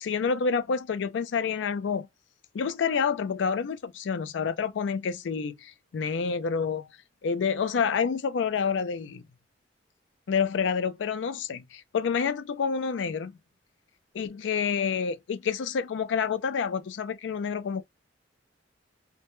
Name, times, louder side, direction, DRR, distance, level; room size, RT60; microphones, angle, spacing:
voice 1, 0.0-2.1 2.5-6.9 7.2-9.2 10.3-13.4 14.1-17.8, left 6 dB, 75° left, 0.4 m, -28 dB
2.1 x 2.1 x 2.9 m
head